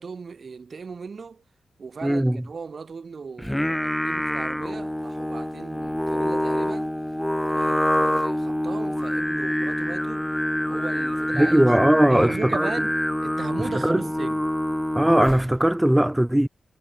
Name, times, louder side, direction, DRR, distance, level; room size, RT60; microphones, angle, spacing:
voice 1, 0.0-1.4 1.8-6.9 7.4-10.3 10.6-13.0 13.2-14.5, right 5 dB, 60° right, 6.8 m, -37 dB
voice 2, 2.0-2.4 11.3-12.7 13.8-14.0 14.9-16.5, right 1 dB, 10° right, 1.5 m, -19 dB
Singing, 3.4-15.6, left 1 dB, 10° left, 0.3 m, -26 dB
cardioid pair, 50°, 0 cm